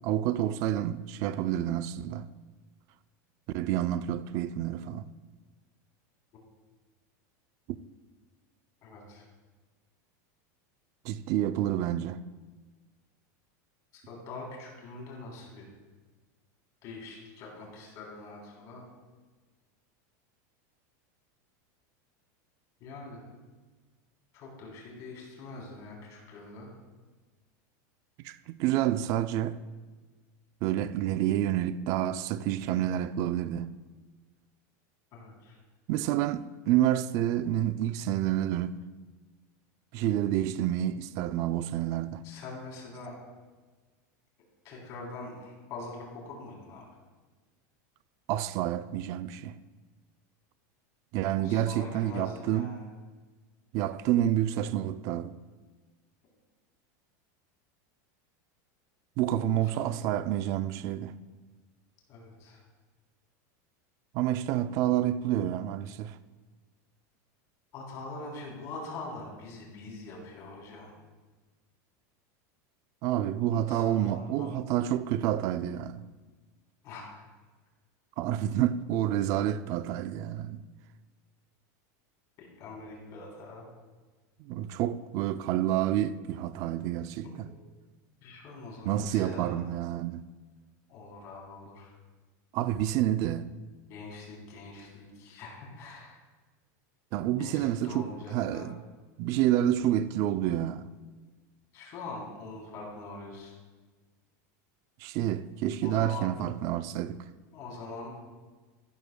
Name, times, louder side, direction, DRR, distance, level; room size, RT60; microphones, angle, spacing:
voice 1, 0.0-2.3 3.5-5.1 11.0-12.2 28.2-29.6 30.6-33.8 35.9-38.8 39.9-42.2 48.3-49.5 51.1-52.8 53.7-55.4 59.2-61.1 64.1-66.2 73.0-76.0 78.2-80.6 84.4-87.5 88.9-90.2 92.5-93.5 97.1-98.7 99.2-100.9 105.0-107.2, right 12 dB, 35° right, 0.3 m, -29 dB
voice 2, 8.8-9.3 13.9-15.7 16.8-18.8 22.8-23.3 24.3-26.7 35.1-35.6 42.2-43.2 44.6-46.9 51.4-52.8 59.3-60.1 62.1-62.6 67.7-71.0 73.6-74.5 76.8-77.2 82.4-83.7 87.2-87.5 88.2-89.6 90.9-91.9 93.9-96.2 97.4-98.7 101.7-103.5 105.8-106.3 107.5-108.1, left 3 dB, 35° left, 3.4 m, -43 dB
14.0 x 13.0 x 2.2 m
supercardioid pair, 175°, 9 cm